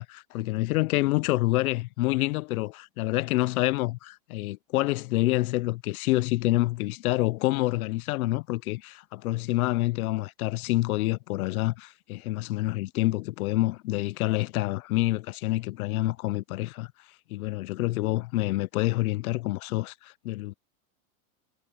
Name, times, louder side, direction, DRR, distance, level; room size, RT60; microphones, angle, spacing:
voice 1, 0.0-16.9 17.3-20.5, left 18 dB, 85° left, 0.6 m, -27 dB
supercardioid pair, 165°, 42 cm